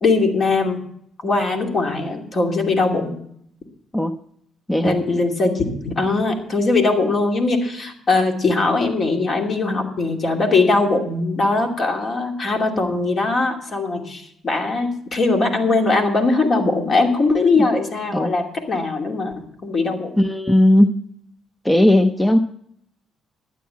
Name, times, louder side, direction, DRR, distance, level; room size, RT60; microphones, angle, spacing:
voice 1, 0.0-0.8 1.2-3.1 4.8-19.3 19.6-20.1, left 3 dB, 45° left, 2 dB, 2.6 m, -20 dB
voice 2, 20.2-21.0 21.6-22.4, left 1 dB, 10° left, 9 dB, 0.6 m, -16 dB
12.0 x 9.4 x 5.7 m, 0.70 s
cardioid pair, 105°, 0 cm